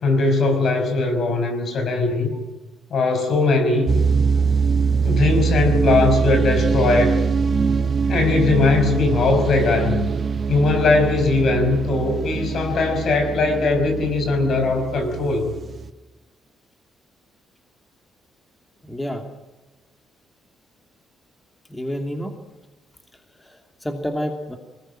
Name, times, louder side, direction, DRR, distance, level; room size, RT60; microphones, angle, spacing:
voice 1, 0.0-2.4 2.9-4.0 5.0-7.2 8.1-10.1 10.5-15.5, left 3 dB, 60° left, 6 dB, 5.6 m, -20 dB
sound 1, 3.9-15.9, right 5 dB, 45° right, 1.0 m, -23 dB
voice 2, 18.9-19.3 21.7-22.3 23.4-24.6, equal, 10° left, 4 dB, 2.9 m, -29 dB
22.5 x 20.0 x 9.1 m, 1.1 s
cardioid pair, 90°, 0 cm